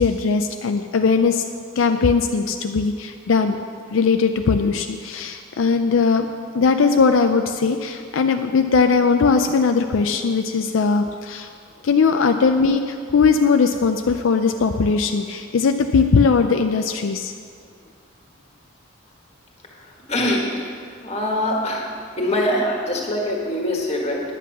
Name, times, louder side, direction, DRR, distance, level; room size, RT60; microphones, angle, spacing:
voice 1, 0.0-1.4 1.8-3.6 3.9-6.3 6.5-11.5 11.8-17.3, left 5 dB, 80° left, 6 dB, 0.5 m, -19 dB
voice 2, 20.1-20.5 21.0-21.8 22.2-24.2, left 1 dB, 30° left, -1 dB, 1.7 m, -23 dB
10.0 x 8.3 x 6.0 m, 2.2 s
head